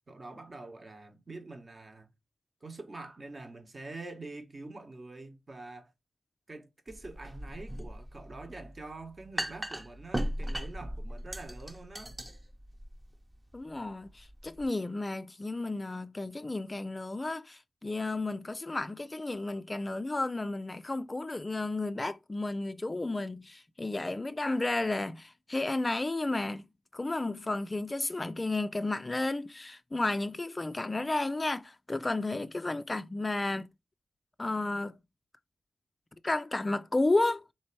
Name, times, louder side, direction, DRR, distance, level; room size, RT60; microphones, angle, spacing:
voice 1, 0.1-2.1 2.6-5.9 6.5-12.2, right 2 dB, 40° right, 0.9 m, -45 dB
sound 1, 6.9-14.7, equal, 15° right, 0.7 m, -39 dB
voice 2, 13.5-26.7 26.9-33.7 34.4-35.0 36.2-37.4, left 2 dB, 30° left, 0.3 m, -32 dB
3.3 x 3.0 x 4.5 m
cardioid pair, 50°, 0 cm